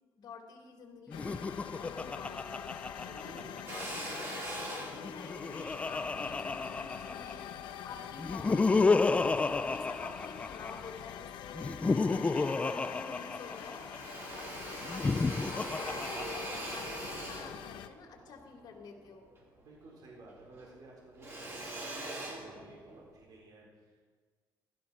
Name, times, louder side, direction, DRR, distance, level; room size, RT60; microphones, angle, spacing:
voice 1, 0.2-2.6 3.1-3.4 3.7-4.2 4.7-16.2 16.7-19.3, left 5 dB, 60° left, 2 dB, 3.0 m, -49 dB
sound 1, 1.1-17.9, left 10 dB, 80° left, 1.0 m, -45 dB
Laughter, 1.1-3.8 4.9-7.5 8.2-10.9 11.5-14.0 14.8-17.0, left 4 dB, 15° left, 0.4 m, -32 dB
voice 2, 3.0-3.5 19.6-24.0, right 2 dB, 55° right, -2 dB, 4.2 m, -54 dB
Drill, 3.7-8.2 8.8-9.9 10.4-11.3 11.7-11.8 12.1-13.1 13.3-20.0 20.3-23.1, right 1 dB, 35° right, 4.3 m, -43 dB
15.5 x 14.0 x 6.2 m, 1.5 s
cardioid pair, 140°, 8 cm